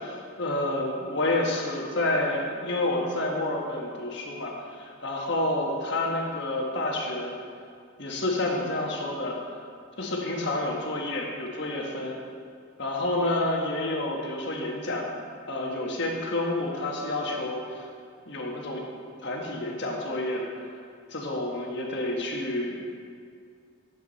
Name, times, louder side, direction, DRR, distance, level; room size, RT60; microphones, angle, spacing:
voice 1, 0.0-7.4 8.0-9.4 10.0-12.2 12.8-15.1 15.5-17.9 18.3-18.8 19.2-20.5 21.1-22.8, left 2 dB, 55° left, -1 dB, 1.4 m, -29 dB
11.0 x 7.5 x 4.1 m, 2.2 s
head